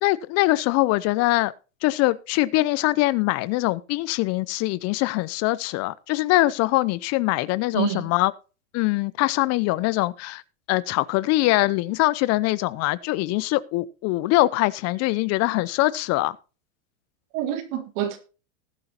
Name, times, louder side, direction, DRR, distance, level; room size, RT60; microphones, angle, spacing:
voice 1, 0.0-1.5 1.8-8.3 8.7-10.4 10.7-16.4, left 19 dB, 40° left, 0.5 m, -23 dB
voice 2, 7.7-8.1 17.3-18.2, right 11 dB, 55° right, 2.0 m, -27 dB
19.5 x 7.9 x 2.9 m
hypercardioid pair, 110°, 41 cm